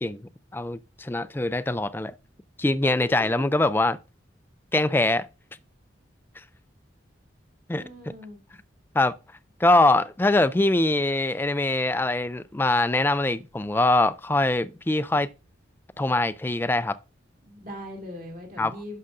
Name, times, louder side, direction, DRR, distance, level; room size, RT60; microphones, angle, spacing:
voice 1, 0.0-2.1 2.6-4.0 4.7-5.3 7.7-7.8 8.9-9.1 9.6-15.3 16.0-17.0 18.6-18.7, left 2 dB, 10° left, 0.3 m, -23 dB
voice 2, 2.8-3.5 7.7-8.4 17.4-19.0, left 1 dB, 45° right, 2.4 m, -40 dB
11.0 x 6.5 x 2.5 m
head